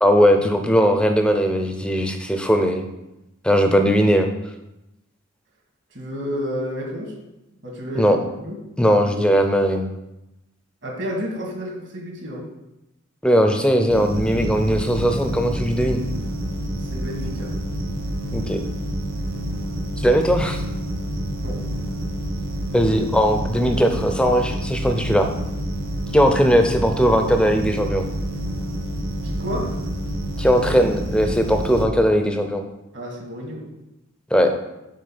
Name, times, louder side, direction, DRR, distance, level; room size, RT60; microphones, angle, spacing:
voice 1, 0.0-2.8 3.4-4.3 8.0-8.2 8.8-9.9 13.2-16.0 18.3-18.6 20.0-20.6 22.7-25.3 26.1-28.0 30.4-32.6 34.3-34.5, equal, 5° left, 5 dB, 0.6 m, -19 dB
voice 2, 5.9-7.2 7.6-8.1 8.4-8.6 10.8-12.5 16.8-17.5 21.4-21.6 29.2-29.8 32.9-33.6, equal, 60° right, -1 dB, 2.0 m, -30 dB
sound 1, 13.9-31.8, right 1 dB, 90° right, 1.0 m, -28 dB
6.4 x 4.2 x 6.0 m, 0.94 s
head